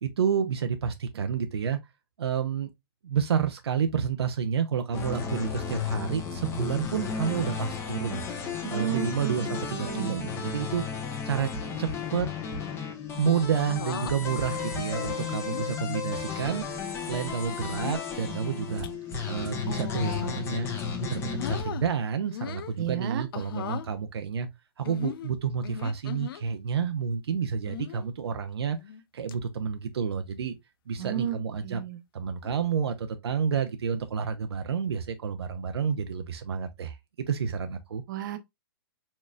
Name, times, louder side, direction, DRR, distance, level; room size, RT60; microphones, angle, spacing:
voice 1, 0.0-1.8 2.2-2.7 3.0-8.2 8.7-10.8 11.2-11.5 11.8-12.3 13.2-18.9 19.3-24.5 24.8-28.8 29.1-30.5 30.9-31.8 32.1-37.0 37.3-38.0, right 7 dB, 80° right, 0.7 m, -29 dB
sound 1, 4.9-21.6, left 6 dB, 20° left, 1.0 m, -34 dB
voice 2, 8.6-10.3 22.8-23.2 31.0-32.0 38.1-38.4, right 13 dB, 50° right, 0.8 m, -33 dB
sound 2, 13.5-14.1 15.1-15.6 16.2-16.5 17.5-18.1 18.6-18.9 19.6-20.5 20.9-21.8 22.3-22.8 23.3-23.9 24.8-26.4 27.6-28.1 28.7-29.0 29.3-29.4 31.0-31.4 32.4-32.7, left 10 dB, 60° left, 0.6 m, -39 dB
4.3 x 3.1 x 2.4 m
hypercardioid pair, 135°, 13 cm